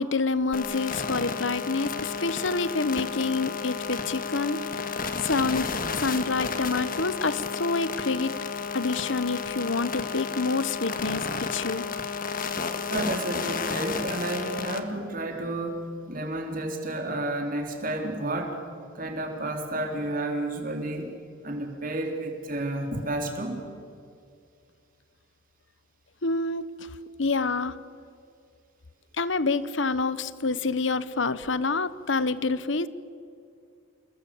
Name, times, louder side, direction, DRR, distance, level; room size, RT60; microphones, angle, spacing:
voice 1, 0.0-4.6 5.2-5.7 6.0-8.4 8.7-11.9 26.2-26.7 27.2-27.8 29.2-32.9, left 3 dB, 65° left, 15 dB, 1.1 m, -27 dB
sound 1, 0.5-14.8, left 5 dB, 45° left, 1.8 m, -32 dB
voice 2, 12.9-18.6 18.9-21.2 21.4-23.6, right 1 dB, 45° right, 3 dB, 3.8 m, -31 dB
29.0 x 20.0 x 8.6 m, 2.4 s
head